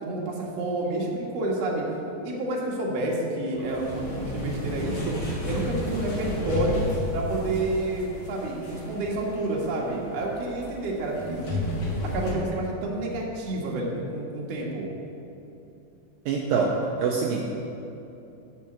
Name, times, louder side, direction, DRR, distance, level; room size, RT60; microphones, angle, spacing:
voice 1, 0.0-1.9 2.2-5.2 5.5-6.9 7.1-11.6 12.0-14.9, right 2 dB, 55° right, -2 dB, 2.0 m, -29 dB
sound 1, 3.5-12.3, left 1 dB, 50° left, 1.3 m, -33 dB
voice 2, 16.3-17.5, right 5 dB, 80° right, -1 dB, 2.1 m, -25 dB
7.3 x 6.6 x 7.7 m, 2.9 s
omnidirectional pair, 4.5 m